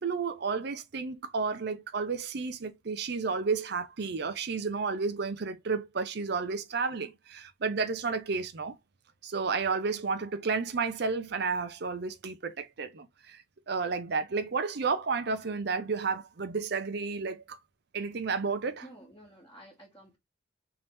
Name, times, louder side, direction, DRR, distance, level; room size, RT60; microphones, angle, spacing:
voice 1, 0.0-8.8 9.2-17.6 17.9-18.9, right 4 dB, 60° right, 0.6 m, -32 dB
voice 2, 18.8-20.2, right 1 dB, 20° left, 1.4 m, -51 dB
3.4 x 2.9 x 4.1 m
head